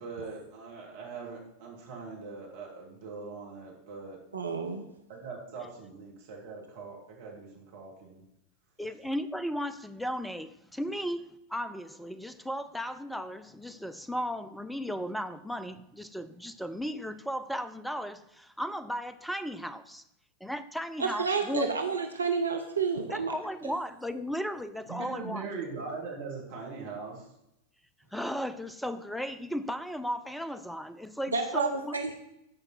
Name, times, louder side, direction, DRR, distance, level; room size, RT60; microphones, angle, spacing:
voice 1, 0.0-4.2 5.1-8.2 24.9-27.3, right 4 dB, 55° right, -2 dB, 3.0 m, -41 dB
voice 2, 4.3-4.8 21.0-23.4 31.3-32.1, right 4 dB, 75° right, 4 dB, 0.9 m, -30 dB
voice 3, 8.8-20.0 20.4-21.8 23.1-25.5 28.1-32.0, equal, ahead, 13 dB, 0.6 m, -35 dB
14.0 x 5.2 x 4.4 m, 0.85 s
figure-of-eight pair, 90°, 0 cm